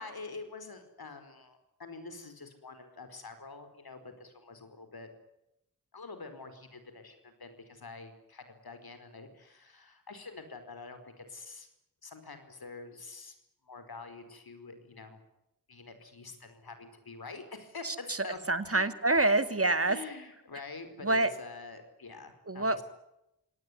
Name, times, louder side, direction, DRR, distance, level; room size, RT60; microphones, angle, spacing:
voice 1, 0.0-5.1 5.9-11.7 12.0-13.3 13.6-15.2 15.7-18.4 18.7-18.9 19.8-22.8, left 3 dB, 75° left, 9 dB, 4.8 m, -46 dB
voice 2, 18.5-20.0 21.0-21.3 22.5-22.8, right 2 dB, 40° right, 12 dB, 2.1 m, -26 dB
25.5 x 19.0 x 9.6 m, 0.85 s
wide cardioid pair, 55°, 37 cm